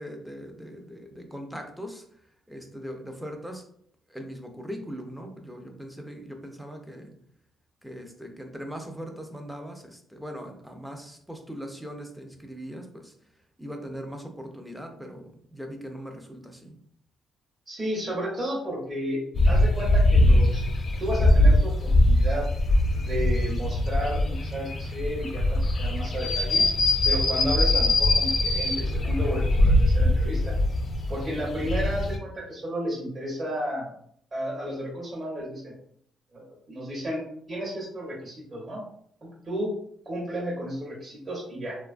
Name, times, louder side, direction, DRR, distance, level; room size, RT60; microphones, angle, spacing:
voice 1, 0.0-2.0 2.5-3.6 4.1-7.1 7.8-13.1 13.6-16.8, equal, 5° right, 4 dB, 0.5 m, -40 dB
voice 2, 17.7-19.2 19.5-20.6 21.0-22.5 22.9-26.6 27.0-30.5 31.1-33.9 34.3-35.7 36.3-37.2 37.5-38.8 39.2-39.7 40.1-41.8, equal, 35° right, -5 dB, 0.8 m, -32 dB
sound 1, 19.3-32.2, left 1 dB, 45° left, 0.5 m, -22 dB
2.8 x 2.2 x 2.4 m, 0.65 s
cardioid pair, 90°, 0 cm